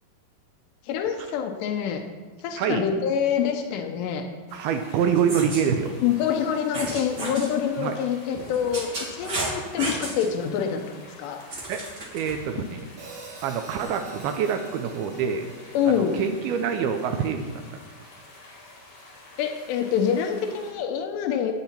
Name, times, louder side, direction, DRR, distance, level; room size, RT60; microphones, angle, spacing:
voice 1, 0.8-2.0 2.4-4.2 6.0-11.4 15.7-16.1 19.4-21.5, left 8 dB, 90° left, 4 dB, 2.9 m, -26 dB
sound 1, 4.5-20.7, left 2 dB, 50° left, 3.6 m, -48 dB
voice 2, 4.5-6.0 7.8-7.9 11.7-11.8 12.1-12.8 13.4-15.5 15.8-17.6, right 7 dB, 80° right, 6 dB, 2.4 m, -26 dB
sound 2, 5.2-5.6 6.7-7.5 8.3-10.3 11.5-12.4, right 2 dB, 35° right, 1.8 m, -32 dB
Hi-hat, 13.0-17.2, right 3 dB, 50° right, 2.3 m, -46 dB
14.0 x 9.1 x 4.4 m, 1.4 s
omnidirectional pair, 5.0 m